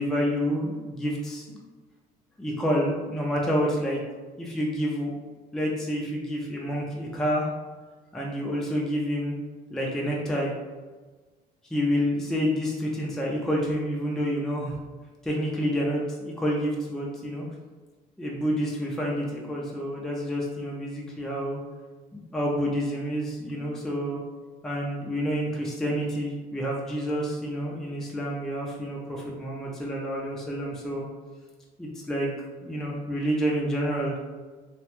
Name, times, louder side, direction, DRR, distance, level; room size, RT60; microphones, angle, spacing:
voice 1, 0.0-1.6 2.4-4.0 4.4-5.1 5.5-7.5 8.1-9.3 9.7-10.5 11.7-14.8 15.2-17.4 18.2-21.6 22.1-24.2 24.6-31.1 31.8-32.3 32.6-34.2, equal, 5° left, -3 dB, 0.4 m, -28 dB
2.3 x 2.2 x 2.9 m, 1.3 s
cardioid pair, 110°, 17 cm